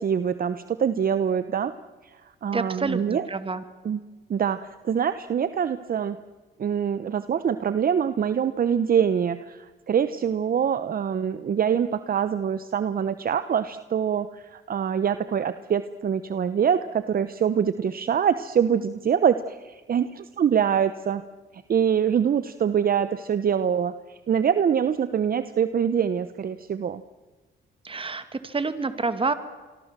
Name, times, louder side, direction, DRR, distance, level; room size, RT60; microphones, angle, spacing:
voice 1, 0.0-1.7 2.0-2.2 2.4-3.3 3.8-4.0 4.3-6.2 6.6-21.2 21.5-27.0, right 8 dB, 45° right, 12 dB, 1.1 m, -24 dB
voice 2, 2.5-3.6 27.8-29.3, right 4 dB, 25° right, 11 dB, 2.4 m, -28 dB
27.0 x 23.5 x 7.6 m, 1.3 s
cardioid pair, 90°, 20 cm